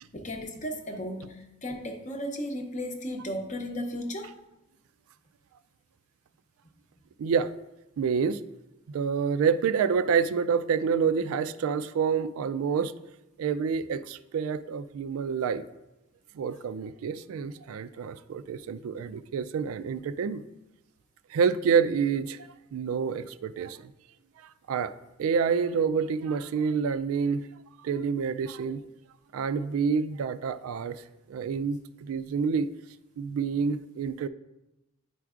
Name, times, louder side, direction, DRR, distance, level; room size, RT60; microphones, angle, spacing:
voice 1, 0.1-4.3, equal, 35° left, 4 dB, 0.7 m, -35 dB
voice 2, 7.2-7.5 8.0-8.4 8.9-12.9 13.4-15.6 16.4-20.4 21.3-22.4 22.7-23.8 24.7-24.9 25.2-27.5 27.8-28.8 29.3-31.0 31.3-32.7 33.2-34.3, right 6 dB, 80° right, 14 dB, 0.3 m, -27 dB
10.0 x 4.5 x 2.4 m, 0.97 s
head